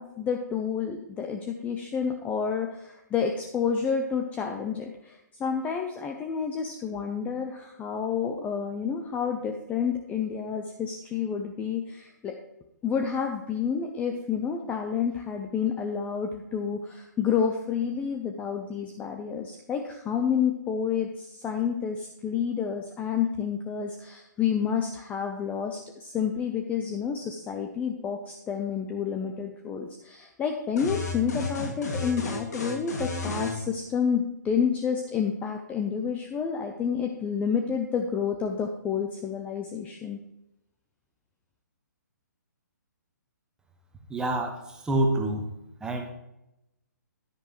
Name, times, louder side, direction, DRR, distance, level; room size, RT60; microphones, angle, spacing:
voice 1, 0.0-12.3 12.8-40.2, left 7 dB, 15° left, 3 dB, 0.7 m, -29 dB
sound 1, 30.8-33.6, left 2 dB, 60° left, 2.3 m, -32 dB
voice 2, 44.1-45.5 45.8-46.1, right 1 dB, 5° right, 3 dB, 1.4 m, -27 dB
10.0 x 10.0 x 3.1 m, 0.89 s
figure-of-eight pair, 130°, 10 cm